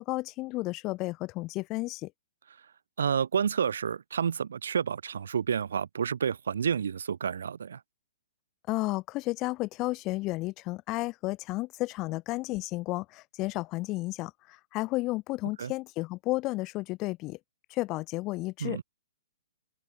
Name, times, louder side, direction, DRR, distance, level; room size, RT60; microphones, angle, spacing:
voice 1, 0.0-2.1 8.7-17.4 17.7-18.8, left 20 dB, 30° left, 0.5 m, -32 dB
voice 2, 3.0-7.8 15.6-15.7 18.6-18.8, right 7 dB, 75° right, 0.5 m, -29 dB
hypercardioid pair, 135°, 0 cm